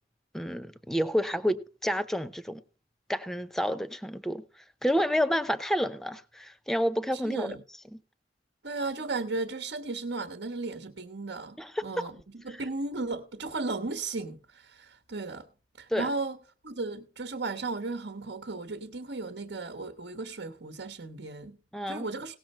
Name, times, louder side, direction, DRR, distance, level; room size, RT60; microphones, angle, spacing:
voice 1, 0.3-2.6 3.1-4.4 4.8-7.6 11.6-11.8 12.5-12.6 15.9-16.1 21.7-22.0, equal, ahead, 0.6 m, -29 dB
voice 2, 7.1-7.6 8.6-15.5 15.8-16.4 16.6-21.6 21.9-22.3, right 3 dB, 70° right, 1.2 m, -35 dB
18.0 x 6.5 x 4.4 m
head